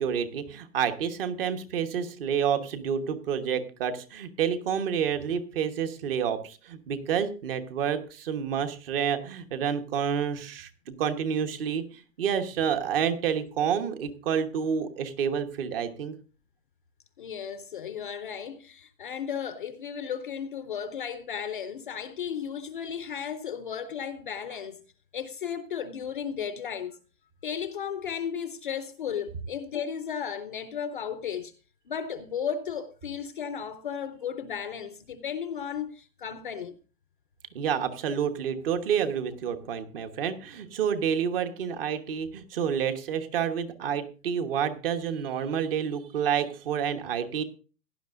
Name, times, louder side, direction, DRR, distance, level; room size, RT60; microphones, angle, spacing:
voice 1, 0.0-16.1 37.5-47.4, right 8 dB, 35° right, 1.2 m, -29 dB
voice 2, 17.2-24.8 25.1-27.0 27.4-31.5 31.9-36.8, left 7 dB, 35° left, 0.5 m, -34 dB
16.5 x 11.0 x 2.5 m
hypercardioid pair, 160°, 48 cm